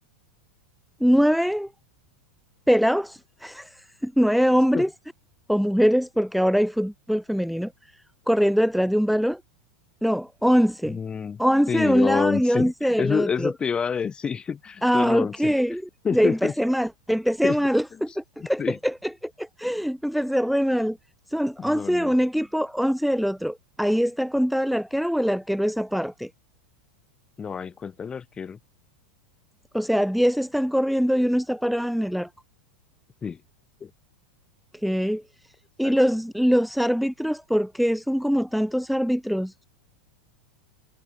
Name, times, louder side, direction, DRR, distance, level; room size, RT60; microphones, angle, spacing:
voice 1, 1.0-1.7 2.7-4.9 5.5-7.7 8.3-9.4 10.0-11.0 11.4-13.5 14.8-15.8 16.1-21.0 21.3-26.3 29.7-32.3 34.8-35.2 35.8-39.6, equal, ahead, 1.7 m, -23 dB
voice 2, 10.8-11.4 11.7-15.6 16.0-16.5 17.4-17.6 18.4-18.8 21.6-22.1 27.4-28.6 33.2-33.4 33.8-33.9 35.8-36.0, left 6 dB, 20° left, 3.1 m, -28 dB
figure-of-eight pair, 90°, 5 cm